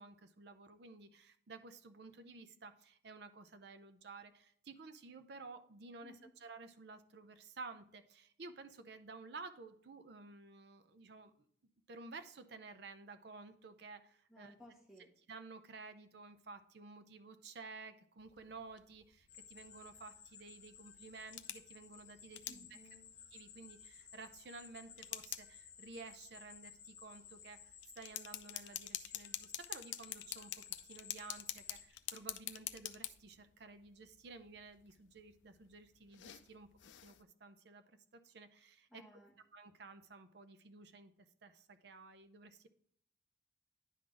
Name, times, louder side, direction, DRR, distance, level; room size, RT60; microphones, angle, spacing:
voice 1, 0.0-11.5 11.9-14.5 15.3-22.8 23.3-36.7 37.0-39.0 39.5-41.1 41.4-42.7, right 3 dB, 60° right, 10 dB, 0.5 m, -53 dB
voice 2, 14.3-15.1 22.5-23.1 38.9-39.3, equal, ahead, -2 dB, 1.3 m, -59 dB
sound 1, 18.2-37.2, left 13 dB, 70° left, 0.4 m, -49 dB
sound 2, 19.3-31.9, left 7 dB, 35° left, 0.8 m, -57 dB
10.0 x 3.9 x 3.6 m, 0.63 s
head